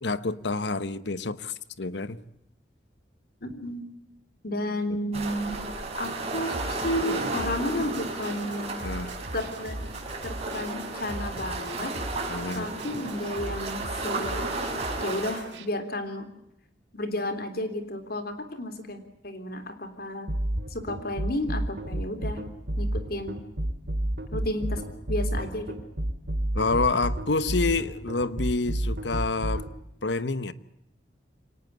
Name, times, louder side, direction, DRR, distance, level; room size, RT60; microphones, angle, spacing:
voice 1, 0.0-2.2 8.8-9.1 12.3-12.7 26.5-29.7 30.0-30.5, left 3 dB, 75° left, 15 dB, 1.1 m, -28 dB
voice 2, 3.4-3.8 4.4-5.7 6.0-8.9 9.3-9.8 10.2-12.0 12.5-14.5 15.0-16.3 16.9-20.3 20.7-22.4 22.8-23.4 24.3-25.7, left 1 dB, 60° left, 8 dB, 3.5 m, -32 dB
sound 1, 5.1-15.4, right 2 dB, 35° right, 6.2 m, -33 dB
sound 2, 6.5-15.7, right 1 dB, 85° right, 2.4 m, -40 dB
sound 3, 20.3-29.7, right 1 dB, 65° right, 2.8 m, -29 dB
24.5 x 19.0 x 9.7 m, 0.81 s
head